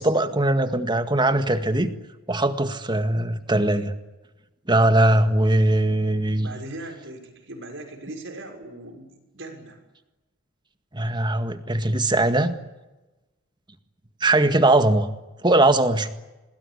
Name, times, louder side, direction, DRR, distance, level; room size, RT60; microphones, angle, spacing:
voice 1, 0.0-1.9 2.3-3.9 4.7-6.5 10.9-12.5 14.2-15.1 15.4-16.1, right 1 dB, 20° right, 9 dB, 1.9 m, -20 dB
voice 2, 6.4-9.8, right 2 dB, 65° right, 4 dB, 6.3 m, -39 dB
27.0 x 20.5 x 10.0 m, 1.1 s
head